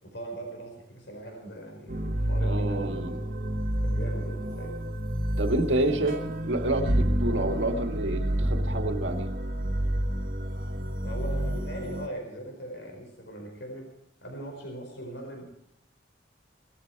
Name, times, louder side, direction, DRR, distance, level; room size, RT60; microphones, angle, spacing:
voice 1, 0.0-3.0 3.8-4.8 5.8-6.2 11.0-13.9 14.2-15.4, right 1 dB, 70° left, 2 dB, 4.8 m, -40 dB
sound 1, 1.9-12.1, right 1 dB, 50° right, 1.4 m, -29 dB
voice 2, 2.4-3.2 5.4-9.3, right 1 dB, 80° right, 5 dB, 1.9 m, -29 dB
18.5 x 14.0 x 4.6 m, 0.72 s
head